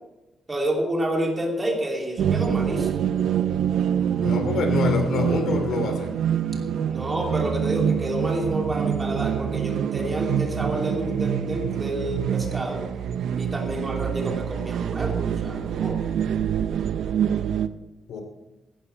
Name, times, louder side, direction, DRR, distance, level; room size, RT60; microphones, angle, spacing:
voice 1, 0.5-2.9 6.9-12.8 13.4-16.0, right 1 dB, 20° right, 0 dB, 2.8 m, -29 dB
sound 1, 2.2-17.7, right 8 dB, 70° right, 0.7 m, -25 dB
voice 2, 4.2-6.1 18.1-18.2, left 4 dB, 70° left, 5 dB, 2.9 m, -25 dB
16.0 x 12.5 x 4.6 m, 0.97 s
wide cardioid pair, 175°, 0 cm